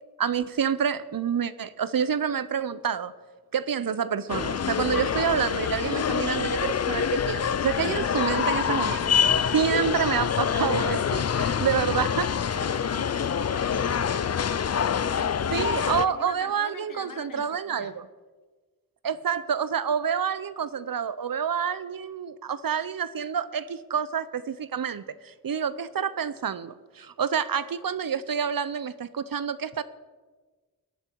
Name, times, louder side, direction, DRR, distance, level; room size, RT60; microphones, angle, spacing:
voice 1, 0.2-3.1 3.5-9.1 9.4-12.3 15.5-18.0 19.0-29.8, right 7 dB, 75° right, 0.7 m, -28 dB
sound 1, 4.3-16.1, left 7 dB, 45° left, 0.5 m, -26 dB
voice 2, 12.5-17.9, left 4 dB, 65° left, 1.4 m, -43 dB
18.5 x 11.0 x 4.6 m
wide cardioid pair, 75°, 35 cm